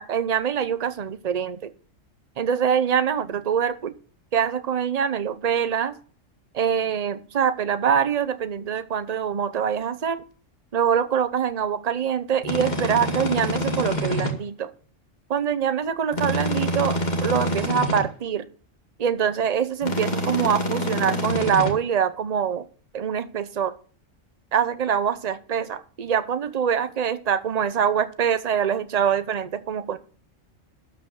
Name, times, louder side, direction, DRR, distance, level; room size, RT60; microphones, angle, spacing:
voice 1, 0.0-1.7 2.4-3.9 4.3-5.9 6.5-10.2 10.7-14.7 15.3-18.4 19.0-22.7 22.9-23.7 24.5-30.0, right 8 dB, 35° right, 13 dB, 0.8 m, -24 dB
sound 1, 12.4-14.3 16.1-18.0 19.8-21.7, equal, 35° left, 2.3 m, -26 dB
12.5 x 5.6 x 6.2 m, 0.42 s
omnidirectional pair, 1.3 m